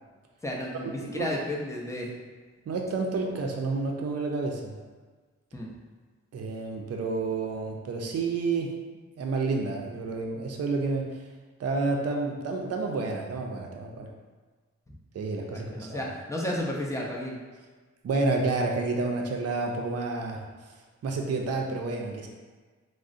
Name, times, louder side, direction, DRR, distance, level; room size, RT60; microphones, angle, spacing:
voice 1, 0.4-2.1 3.3-3.4 5.5-5.7 14.9-15.0 15.5-17.4, left 1 dB, 10° left, -2 dB, 0.5 m, -33 dB
voice 2, 2.7-4.7 6.3-8.7 9.2-11.0 11.6-14.1 15.1-16.1 18.0-20.4 21.0-22.3, right 3 dB, 55° right, 1 dB, 0.4 m, -29 dB
3.6 x 2.0 x 2.5 m, 1.4 s
wide cardioid pair, 90°, 29 cm